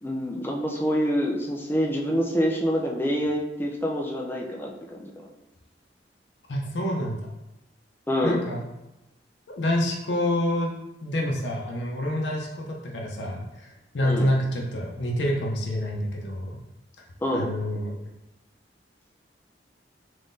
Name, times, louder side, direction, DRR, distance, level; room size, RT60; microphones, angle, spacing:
voice 1, 0.0-5.3 8.1-8.4 14.0-14.3 17.2-17.8, equal, 10° left, -1 dB, 0.5 m, -27 dB
voice 2, 6.5-7.3 8.2-8.6 9.5-10.7 11.0-16.6 17.3-17.9, left 1 dB, 75° left, -2 dB, 0.6 m, -27 dB
3.5 x 3.1 x 2.6 m, 0.93 s
head